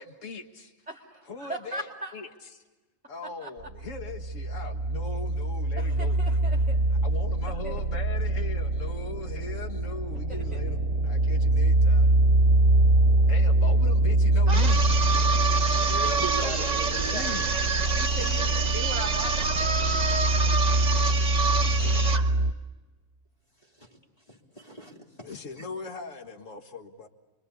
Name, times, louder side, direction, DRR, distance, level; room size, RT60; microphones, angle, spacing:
voice 1, 0.0-0.7 1.3-1.9 2.1-2.6 3.1-6.2 7.0-12.2 13.2-14.8 15.7-17.5 21.7-22.2 25.2-27.1, left 4 dB, 75° left, 2.0 m, -40 dB
voice 2, 0.9-2.1 3.4-3.5 5.8-6.8 7.6-7.7 10.3-10.6 17.9-19.8, right 1 dB, 5° right, 2.1 m, -38 dB
sound 1, 3.6-22.5, right 2 dB, 55° right, 1.3 m, -24 dB
sound 2, 14.5-22.3, right 4 dB, 30° right, 1.4 m, -27 dB
voice 3, 16.0-17.5 17.8-18.1 23.6-24.0 24.3-25.6, right 3 dB, 30° left, 3.4 m, -40 dB
29.0 x 23.5 x 8.4 m
omnidirectional pair, 1.3 m